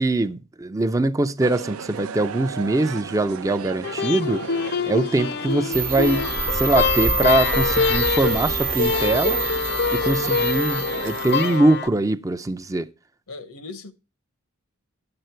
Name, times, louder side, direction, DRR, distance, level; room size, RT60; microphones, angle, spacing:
voice 1, 0.0-4.4 4.9-9.4 9.9-12.9, right 2 dB, 15° right, 0.4 m, -22 dB
Loyola Field Recording (Malloy Commons), 1.4-11.6, right 6 dB, 70° right, 0.4 m, -36 dB
sound 1, 3.8-11.9, left 5 dB, 50° left, 0.5 m, -24 dB
sound 2, 5.7-11.5, right 6 dB, 40° right, 0.8 m, -28 dB
voice 2, 10.0-10.3 13.3-13.9, left 3 dB, 85° left, 1.0 m, -39 dB
10.0 x 7.8 x 4.5 m
head